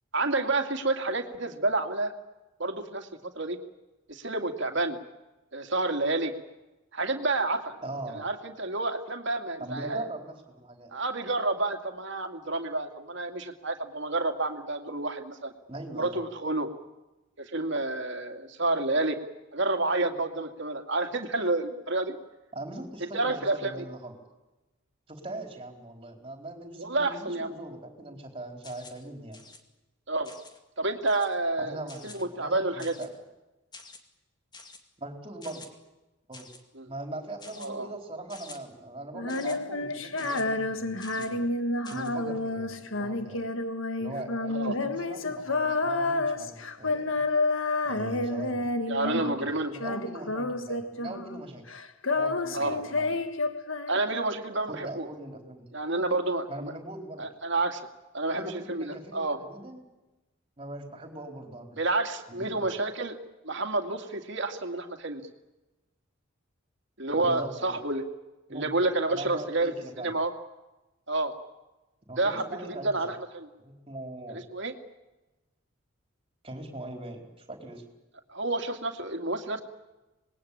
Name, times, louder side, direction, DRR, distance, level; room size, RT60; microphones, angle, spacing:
voice 1, 0.1-2.1 2.6-3.1 3.4-3.6 4.1-5.0 5.5-6.3 6.9-7.7 8.1-10.1 10.9-15.5 15.9-16.7 17.4-19.2 19.5-22.2 23.1-23.8 26.8-27.5 30.1-30.3 30.8-33.0 36.7-36.9 37.6-37.9 44.5-44.8 48.9-49.7 52.5-52.8 53.9-55.1 55.7-56.7 57.2-57.8 58.1-59.4 61.8-63.2 63.4-65.2 67.0-68.0 68.5-70.3 71.1-71.3 72.2-73.5 74.3-74.7 78.3-79.6, right 2 dB, 60° right, 5 dB, 2.4 m, -29 dB
voice 2, 7.8-8.2 9.6-10.9 15.7-16.2 22.5-24.2 25.1-29.4 31.6-33.1 35.0-35.6 36.3-36.5 36.9-41.4 41.9-43.5 44.0-47.2 47.8-48.7 49.0-51.6 52.1-53.2 54.7-55.7 56.5-57.3 58.3-59.8 60.6-61.7 62.3-62.7 67.2-67.8 68.5-68.7 69.1-70.1 72.1-72.9 73.6-74.4 76.4-77.8, right 2 dB, 25° right, 4 dB, 4.4 m, -41 dB
sound 1, 28.6-29.0 29.3-29.6 30.2-30.6 31.1-31.4 31.9-32.2 32.8-33.2 33.7-34.0 34.5-34.8 35.4-35.7 36.3-36.6 37.4-37.7 38.3-38.6 39.3-39.6 40.2-40.4 41.0-41.3 41.8-42.1, left 3 dB, 20° left, 2.3 m, -48 dB
Female singing, 39.1-49.5 49.7-51.4 51.7-54.3, left 2 dB, 70° left, 1.6 m, -30 dB
26.5 x 20.5 x 8.7 m, 1.1 s
head